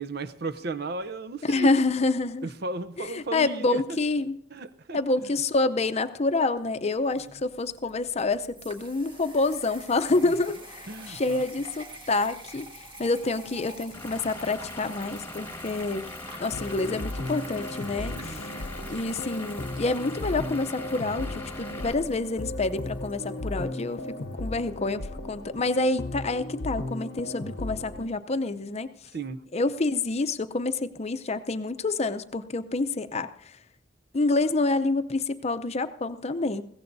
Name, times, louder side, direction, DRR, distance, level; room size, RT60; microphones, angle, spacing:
voice 1, 0.0-1.7 2.4-3.8 4.5-5.0 10.2-10.3 10.9-11.4 18.1-18.4 29.1-29.4, right 3 dB, 60° right, 0.7 m, -34 dB
voice 2, 1.4-2.5 3.0-4.4 4.9-12.7 13.0-16.1 16.4-18.5 18.9-24.0 24.3-28.9 29.5-33.6 34.1-36.6, left 3 dB, 35° left, 0.6 m, -27 dB
sound 1, 6.4-24.4, right 1 dB, 30° right, 1.6 m, -48 dB
Vehicle / Engine, 13.9-21.9, left 2 dB, 15° left, 1.5 m, -41 dB
sound 2, 16.5-28.1, left 1 dB, 80° left, 0.8 m, -36 dB
21.5 x 16.5 x 2.7 m
head